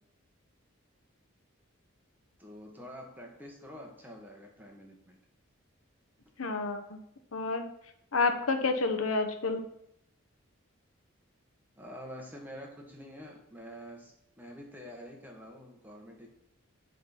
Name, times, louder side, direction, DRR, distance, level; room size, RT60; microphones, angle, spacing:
voice 1, 2.4-5.2 11.8-16.3, equal, 10° right, 1 dB, 1.3 m, -47 dB
voice 2, 6.4-7.0 7.3-7.7 8.1-9.6, left 3 dB, 85° left, 7 dB, 0.9 m, -29 dB
10.0 x 3.9 x 5.8 m, 0.77 s
head